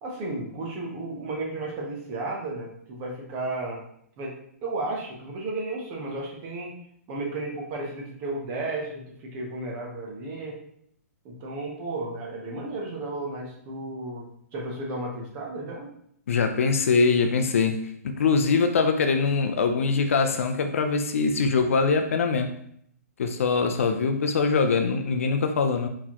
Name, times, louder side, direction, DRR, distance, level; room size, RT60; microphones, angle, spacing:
voice 1, 0.0-3.8 4.2-4.3 4.6-6.7 7.1-10.6 11.2-15.9, right 2 dB, 20° right, 0.7 m, -33 dB
voice 2, 16.3-22.5 23.2-25.9, left 4 dB, 55° left, 0.5 m, -23 dB
4.3 x 4.3 x 2.9 m
hypercardioid pair, 180°, 9 cm